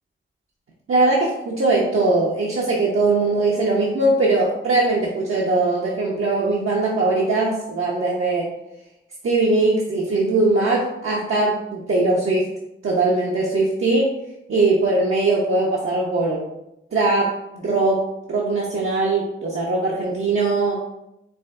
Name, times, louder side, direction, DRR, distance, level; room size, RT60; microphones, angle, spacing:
voice 1, 0.9-8.5 9.2-12.5 12.8-14.1 14.5-16.5 16.9-20.8, right 2 dB, 80° right, -4 dB, 0.7 m, -20 dB
4.9 x 3.4 x 2.5 m, 0.86 s
wide cardioid pair, 75°, 21 cm